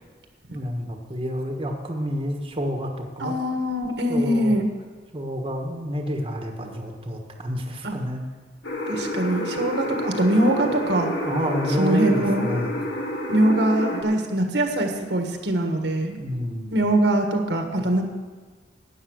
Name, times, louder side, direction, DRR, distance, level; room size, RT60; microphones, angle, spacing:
voice 1, 0.5-3.4 4.1-4.5 5.1-8.3 11.2-12.8 16.2-16.8, equal, 30° right, 2 dB, 1.3 m, -29 dB
voice 2, 3.2-4.7 7.8-8.0 8.9-11.1 11.8-12.5 13.3-16.2 16.7-18.0, right 1 dB, 75° right, 4 dB, 1.5 m, -22 dB
sound 1, 8.6-14.0, left 1 dB, 75° left, 1.9 m, -29 dB
12.5 x 9.2 x 6.4 m, 1.4 s
head